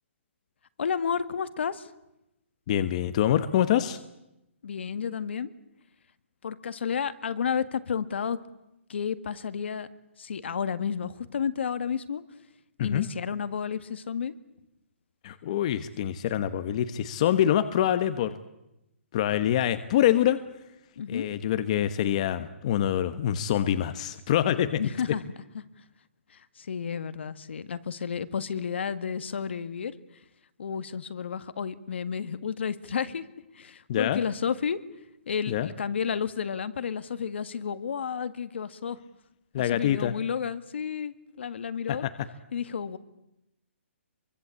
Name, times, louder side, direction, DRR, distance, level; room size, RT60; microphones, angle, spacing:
voice 1, 0.8-1.9 4.6-5.5 6.4-8.4 8.9-9.9 10.2-12.2 12.8-14.3 21.0-21.3 24.8-25.2 25.5-25.6 26.3-29.9 30.6-33.3 33.5-34.8 35.3-39.0 39.7-42.1 42.5-43.0, left 7 dB, 60° left, 13 dB, 1.8 m, -31 dB
voice 2, 2.7-4.0 12.8-13.1 15.2-18.3 19.1-20.4 21.1-24.8 33.9-34.2 35.5-35.7 39.5-40.1 41.9-42.1, left 11 dB, 30° left, 11 dB, 1.1 m, -25 dB
26.5 x 23.5 x 8.6 m, 0.89 s
hypercardioid pair, 170°, 7 cm